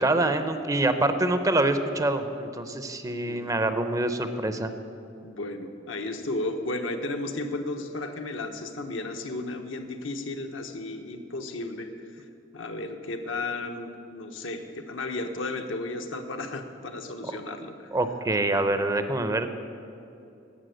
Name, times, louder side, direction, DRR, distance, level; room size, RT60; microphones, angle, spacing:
voice 1, 0.0-4.7 17.9-19.6, right 2 dB, 20° right, 9 dB, 0.6 m, -25 dB
voice 2, 5.2-11.9 12.5-17.9, left 2 dB, 75° left, 5 dB, 1.0 m, -34 dB
11.5 x 8.3 x 7.8 m, 2.7 s
head